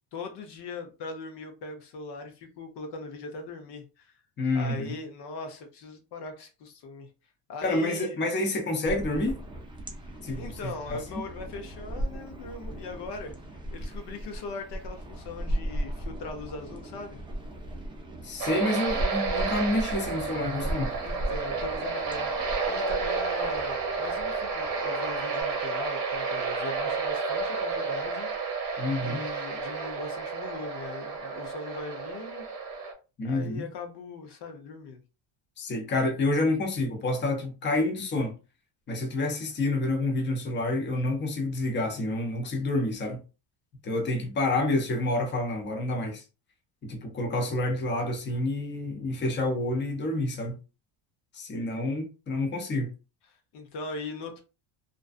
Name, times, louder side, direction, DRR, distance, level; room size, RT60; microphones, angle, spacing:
voice 1, 0.1-4.1 4.5-7.1 7.5-8.2 10.3-13.4 13.7-17.2 18.7-18.8 21.0-22.3 22.6-28.6 29.0-32.5 33.2-35.0 53.3-54.4, left 3 dB, 55° left, 0.7 m, -40 dB
voice 2, 4.4-4.9 7.6-9.4 10.2-11.2 18.2-20.9 28.8-29.2 33.2-33.6 35.6-38.3 38.9-43.2 43.8-46.2 46.8-50.6 51.3-52.9, left 2 dB, 25° left, 0.7 m, -28 dB
sound 1, 8.8-25.4, equal, 10° right, 0.5 m, -37 dB
sound 2, 18.4-32.9, right 4 dB, 45° right, 0.8 m, -31 dB
2.5 x 2.2 x 2.3 m
cardioid pair, 115°, 49 cm